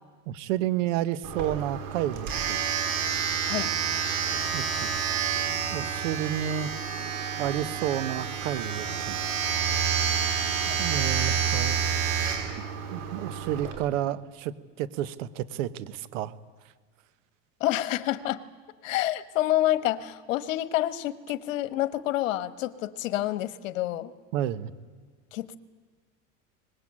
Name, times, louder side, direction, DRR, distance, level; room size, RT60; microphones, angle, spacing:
voice 1, 0.3-2.6 4.5-5.0 5.7-6.7 7.4-9.2 10.8-11.8 12.9-16.3 24.3-24.7, right 12 dB, 80° right, 14 dB, 1.3 m, -30 dB
Domestic sounds home sounds, 1.2-13.7, right 7 dB, 60° right, 5.9 m, -29 dB
voice 2, 17.6-18.4 18.8-24.1 25.3-25.6, left 14 dB, 85° left, 13 dB, 1.3 m, -28 dB
23.0 x 20.5 x 8.8 m, 1.5 s
supercardioid pair, 110°, 38 cm